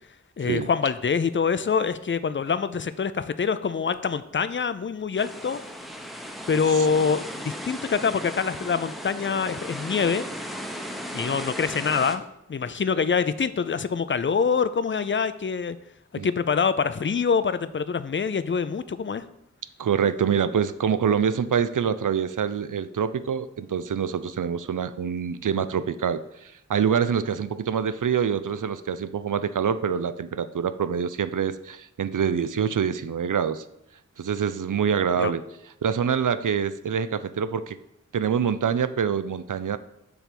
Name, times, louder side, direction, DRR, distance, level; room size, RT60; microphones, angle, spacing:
voice 1, 0.4-5.6 6.5-10.2 11.1-15.8 16.2-19.3 35.2-35.3, left 6 dB, 40° left, 13 dB, 0.4 m, -25 dB
sound 1, 5.2-12.2, equal, ahead, 0.7 m, -36 dB
voice 2, 19.8-33.6 34.2-35.4 35.8-37.8 38.1-39.8, right 7 dB, 75° right, 13 dB, 0.4 m, -25 dB
6.9 x 3.4 x 5.9 m, 0.84 s
wide cardioid pair, 45°, 32 cm